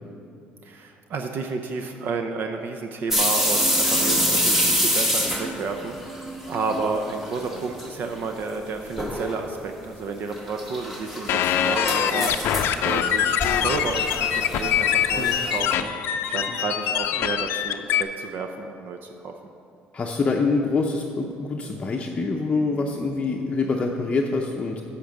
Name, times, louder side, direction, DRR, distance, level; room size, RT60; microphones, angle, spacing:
voice 1, 0.6-19.3, right 4 dB, 55° right, 5 dB, 0.6 m, -31 dB
sound 1, 3.1-6.9 7.2-7.9 8.2-8.3 9.0-9.3 10.3-15.8, equal, 5° right, 1.2 m, -26 dB
sound 2, 11.3-18.0, left 9 dB, 70° left, 0.5 m, -24 dB
voice 2, 16.2-16.6 19.9-24.8, left 3 dB, 30° left, 0 dB, 0.6 m, -25 dB
8.5 x 5.9 x 7.6 m, 2.6 s
cardioid pair, 105°, 4 cm